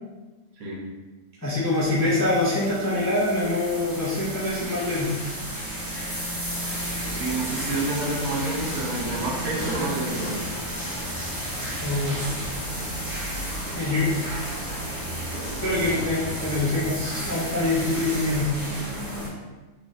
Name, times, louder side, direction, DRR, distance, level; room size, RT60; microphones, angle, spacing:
voice 1, 1.4-5.1 11.8-12.2 13.8-14.0 15.6-16.2 16.4-18.5, left 2 dB, 25° left, -7 dB, 0.4 m, -24 dB
sound 1, 1.7-19.3, equal, 15° right, 0.8 m, -32 dB
voice 2, 7.1-10.4, right 2 dB, 75° right, -3 dB, 1.2 m, -29 dB
3.0 x 2.5 x 4.0 m, 1.2 s
omnidirectional pair, 1.5 m